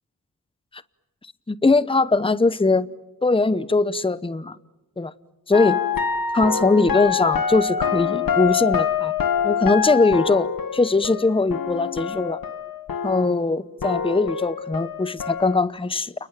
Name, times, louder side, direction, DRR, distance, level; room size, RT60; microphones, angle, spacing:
voice 1, 1.5-2.9 3.2-4.6 5.0-5.1 5.5-5.8 6.3-9.1 9.4-12.4 13.0-16.1, left 3 dB, 15° left, 0.9 m, -21 dB
Potion seller, 5.5-13.5 13.8-15.6, left 7 dB, 70° left, 1.6 m, -25 dB
29.5 x 21.5 x 9.1 m
cardioid pair, 50°, 36 cm